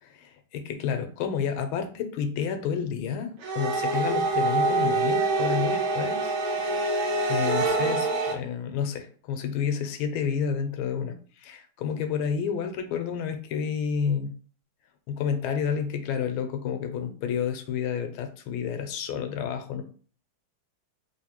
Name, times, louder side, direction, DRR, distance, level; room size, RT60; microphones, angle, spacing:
voice 1, 0.0-6.3 6.7-7.0 7.2-14.3 15.1-19.8, left 7 dB, 80° left, 7 dB, 1.4 m, -30 dB
sound 1, 3.4-8.3, right 3 dB, 75° right, 1.6 m, -25 dB
3.7 x 2.6 x 2.8 m, 0.42 s
omnidirectional pair, 2.3 m